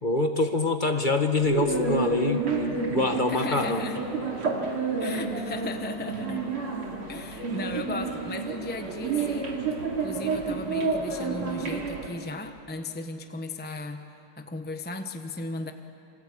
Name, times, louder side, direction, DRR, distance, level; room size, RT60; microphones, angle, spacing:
voice 1, 0.0-3.8, left 2 dB, 30° left, 5 dB, 1.1 m, -25 dB
sound 1, 1.4-12.1, right 4 dB, 85° right, 3.7 m, -30 dB
voice 2, 3.3-4.0 5.0-6.5 7.1-9.6 10.0-14.1 14.4-15.7, left 2 dB, 10° left, 6 dB, 0.5 m, -36 dB
28.0 x 24.0 x 8.6 m, 2.9 s
omnidirectional pair, 2.3 m